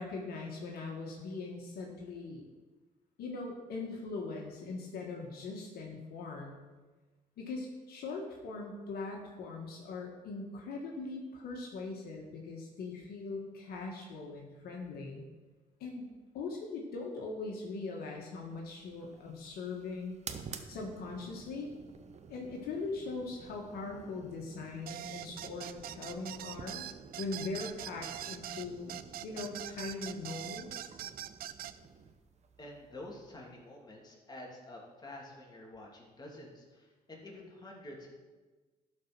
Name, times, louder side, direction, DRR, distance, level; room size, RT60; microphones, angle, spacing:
voice 1, 0.0-2.4 3.2-6.6 7.4-15.2 15.8-16.1 16.3-20.1 20.7-21.7 22.3-26.9 27.2-30.9, left 3 dB, 75° left, 0 dB, 1.5 m, -41 dB
sound 1, 18.4-33.7, right 6 dB, 45° right, 0.8 m, -51 dB
sound 2, 24.9-31.8, right 12 dB, 70° right, 0.5 m, -43 dB
voice 2, 32.6-38.1, left 1 dB, 25° left, -2 dB, 2.7 m, -49 dB
11.5 x 4.6 x 6.0 m, 1.3 s
cardioid pair, 80°, 16 cm